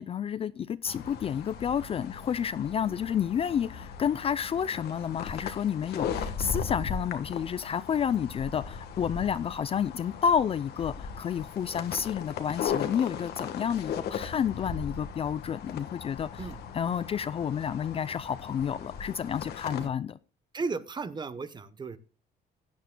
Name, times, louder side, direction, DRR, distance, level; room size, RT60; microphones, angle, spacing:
voice 1, 0.0-16.5 16.7-20.2, left 8 dB, 35° left, 0.4 m, -30 dB
sound 1, 0.9-19.9, left 7 dB, 70° left, 1.3 m, -38 dB
voice 2, 20.5-22.0, right 4 dB, 25° right, 0.9 m, -35 dB
16.5 x 9.5 x 2.2 m
cardioid pair, 110°, 17 cm